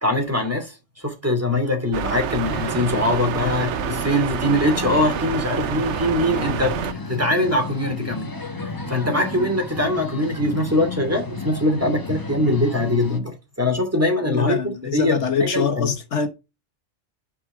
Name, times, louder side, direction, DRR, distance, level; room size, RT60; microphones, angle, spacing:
voice 1, 0.0-8.3 8.6-15.9, left 1 dB, 10° right, 2.5 m, -22 dB
sound 1, 1.9-6.9, right 9 dB, 75° right, 1.0 m, -28 dB
sound 2, 2.4-13.2, left 3 dB, 20° left, 0.9 m, -33 dB
voice 2, 14.3-16.3, left 5 dB, 80° left, 1.6 m, -24 dB
10.0 x 5.0 x 4.8 m
omnidirectional pair, 1.2 m